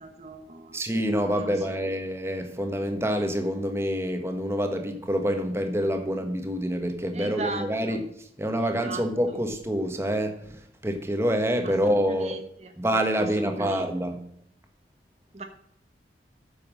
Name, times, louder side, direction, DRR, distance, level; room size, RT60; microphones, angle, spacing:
voice 1, 0.0-0.8 1.2-1.7 7.1-7.9 8.6-9.0 11.6-12.4 13.2-13.9 15.3-15.4, right 2 dB, 35° right, 1.0 m, -38 dB
voice 2, 0.7-12.4 12.8-14.3, equal, 15° right, 1.3 m, -27 dB
9.0 x 7.0 x 6.3 m
head